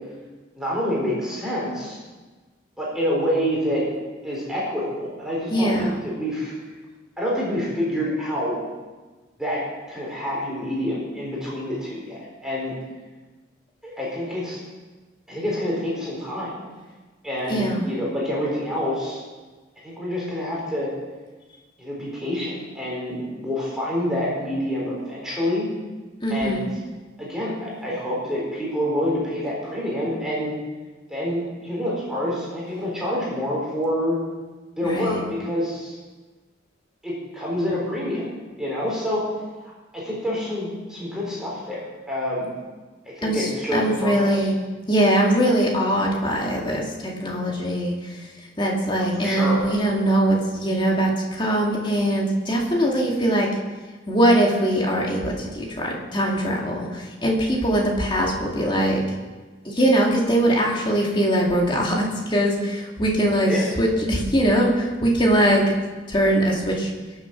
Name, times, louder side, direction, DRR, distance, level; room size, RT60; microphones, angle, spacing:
voice 1, 0.6-2.0 2.8-3.8 4.2-6.5 7.2-8.6 9.4-9.6 9.9-12.7 13.8-14.6 15.3-16.6 17.2-19.2 19.8-20.9 21.8-25.7 26.3-26.7 27.2-30.5 31.1-34.2 34.8-36.0 37.0-38.2 38.6-39.2 39.6-41.8 42.1-42.5 43.2-44.4 49.2-49.6 63.5-63.6, equal, 5° right, -6 dB, 4.1 m, -27 dB
voice 2, 5.5-5.9 17.5-17.9 26.2-26.7 34.8-35.2 43.2-44.5 44.9-53.5 54.1-59.0 59.6-65.6 66.1-66.9, right 1 dB, 25° left, -1 dB, 2.4 m, -22 dB
22.0 x 7.4 x 6.0 m, 1.3 s
head